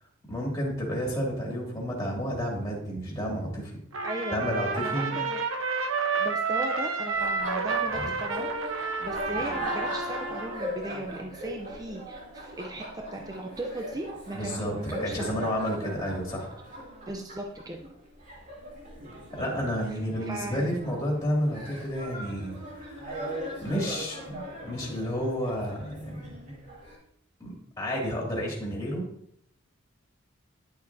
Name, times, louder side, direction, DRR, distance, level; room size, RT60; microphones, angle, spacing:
voice 1, 0.3-3.7 4.3-5.2 7.9-8.1 14.3-16.5 19.3-26.3 27.4-29.1, equal, 15° left, -3 dB, 2.3 m, -31 dB
Trumpet, 3.9-10.7, right 4 dB, 75° right, 0.9 m, -30 dB
voice 2, 4.0-4.4 4.7-5.4 6.1-15.3 17.1-17.8 19.9-20.8, right 1 dB, 20° right, 2 dB, 0.6 m, -37 dB
Laughter, 7.1-27.0, right 1 dB, 40° right, 2.4 m, -39 dB
10.5 x 6.7 x 2.7 m, 0.68 s
head